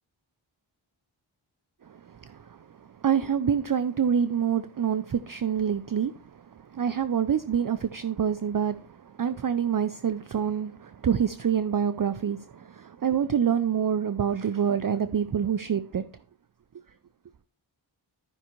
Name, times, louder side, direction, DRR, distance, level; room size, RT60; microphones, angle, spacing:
voice 1, 1.8-2.6 3.0-16.0, right 8 dB, 45° right, 0.5 m, -27 dB
13.5 x 5.6 x 3.0 m
wide cardioid pair, 55°, 48 cm